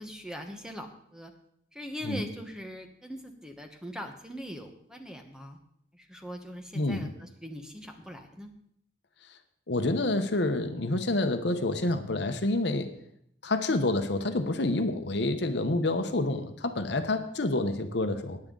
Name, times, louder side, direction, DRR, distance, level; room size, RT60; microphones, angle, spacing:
voice 1, 0.0-1.3 1.7-5.6 5.9-8.5, equal, 5° right, 4 dB, 1.1 m, -41 dB
voice 2, 6.7-7.1 9.7-12.9 13.4-18.4, left 2 dB, 65° left, 8 dB, 1.0 m, -28 dB
17.5 x 9.9 x 3.9 m, 0.70 s
head